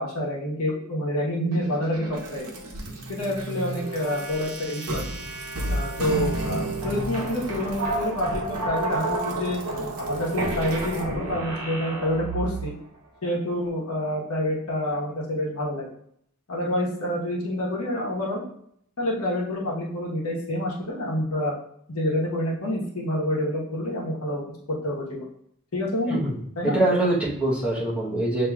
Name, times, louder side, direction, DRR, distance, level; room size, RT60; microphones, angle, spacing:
voice 1, 0.0-2.4 3.1-5.0 5.7-9.6 10.0-12.7 13.2-15.9 16.5-18.4 19.0-21.5 21.9-24.4 24.8-25.3 25.7-26.2 26.6-26.8, left 1 dB, 75° left, -3 dB, 1.2 m, -27 dB
sound 1, 1.5-12.8, right 2 dB, 85° right, 0.9 m, -31 dB
voice 2, 26.1-28.5, right 1 dB, 5° right, -8 dB, 1.1 m, -24 dB
6.9 x 2.9 x 2.4 m, 0.68 s
head